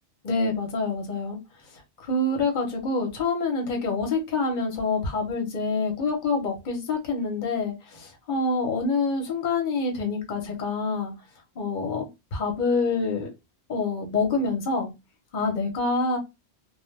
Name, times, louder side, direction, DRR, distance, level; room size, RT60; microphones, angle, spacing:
voice 1, 0.2-1.4 2.0-11.1 11.6-13.3 13.7-14.9 15.3-16.2, left 3 dB, 45° left, 0.8 m, -26 dB
2.2 x 2.1 x 3.1 m
omnidirectional pair, 1.2 m